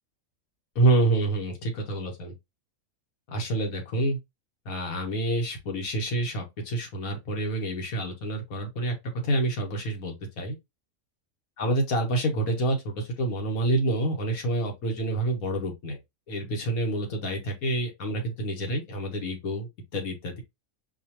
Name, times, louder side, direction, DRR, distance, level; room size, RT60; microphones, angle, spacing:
voice 1, 0.8-2.3 3.3-4.2 4.7-9.0 9.2-10.6 11.6-16.0 16.3-20.4, right 2 dB, 85° left, 1.6 m, -28 dB
4.7 x 2.4 x 2.9 m
omnidirectional pair, 1.5 m